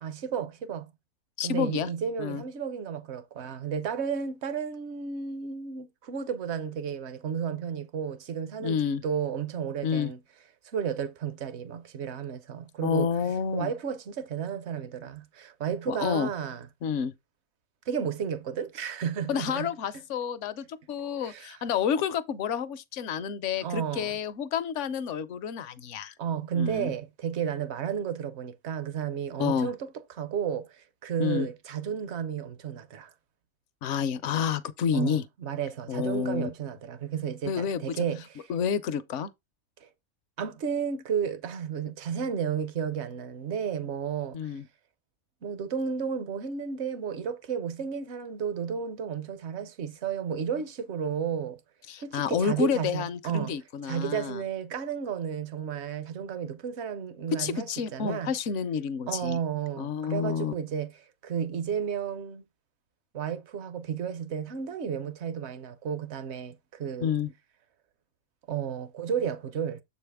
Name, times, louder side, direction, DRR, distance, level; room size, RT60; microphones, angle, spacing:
voice 1, 0.0-0.9 1.4-10.2 10.6-13.1 13.5-16.7 17.9-19.7 21.2-21.6 23.6-24.2 26.2-33.1 34.9-38.5 39.8-39.9 40.4-44.6 45.4-51.6 52.0-53.6 53.8-57.7 57.9-58.3 59.1-62.4 63.1-67.1 68.5-69.8, right 7 dB, 60° right, 0.9 m, -32 dB
voice 2, 1.4-1.9 2.2-2.4 8.6-9.0 9.8-10.1 12.8-13.7 15.9-16.3 16.8-17.1 19.3-26.1 26.5-26.9 29.4-29.7 31.2-31.5 33.8-35.2 35.9-36.5 37.4-38.0 38.5-39.3 44.3-44.6 51.9-54.4 57.4-59.4 59.8-60.5 67.0-67.3, left 7 dB, 65° left, 0.9 m, -29 dB
7.3 x 4.8 x 3.5 m
omnidirectional pair, 1.5 m